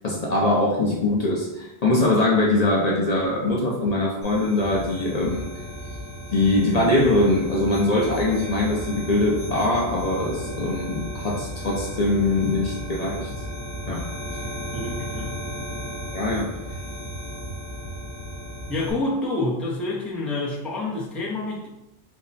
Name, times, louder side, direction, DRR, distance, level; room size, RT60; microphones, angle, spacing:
voice 1, 0.0-5.5 6.3-13.3 13.9-14.0 16.1-16.5, left 2 dB, 45° left, -3 dB, 0.6 m, -22 dB
sound 1, 4.2-18.9, equal, 75° left, 1.1 m, -34 dB
voice 2, 14.7-15.4 18.7-21.7, left 2 dB, ahead, -5 dB, 0.4 m, -28 dB
3.5 x 2.1 x 4.0 m, 0.94 s
omnidirectional pair, 1.1 m